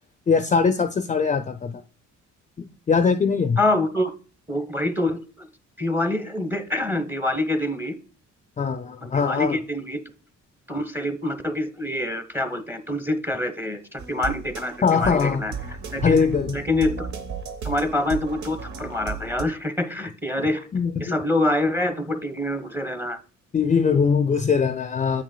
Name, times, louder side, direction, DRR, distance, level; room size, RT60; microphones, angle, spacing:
voice 1, 0.3-1.7 2.6-3.6 8.6-9.6 14.8-15.4 16.0-16.6 20.4-20.5 20.7-21.2 23.5-25.2, left 5 dB, 25° left, 0.4 m, -21 dB
voice 2, 3.6-4.1 4.5-5.5 5.8-8.0 9.0-10.0 10.7-16.2 16.5-17.1 17.6-20.7 21.0-23.2, left 1 dB, 5° right, 1.0 m, -26 dB
sound 1, 14.0-19.4, right 5 dB, 70° right, 0.9 m, -35 dB
8.1 x 6.0 x 2.2 m
cardioid pair, 90°, 30 cm